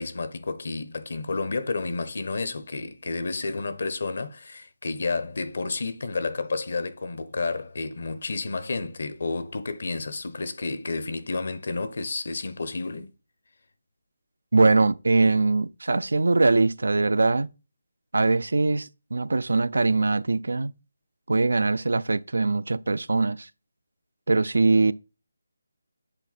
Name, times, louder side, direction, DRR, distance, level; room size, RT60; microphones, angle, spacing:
voice 1, 0.0-13.1, left 3 dB, 60° left, 0.9 m, -31 dB
voice 2, 14.5-17.5 18.1-20.7 21.3-23.5 24.3-24.9, right 3 dB, 80° right, 0.4 m, -22 dB
7.9 x 3.5 x 4.2 m
figure-of-eight pair, 165°, 0 cm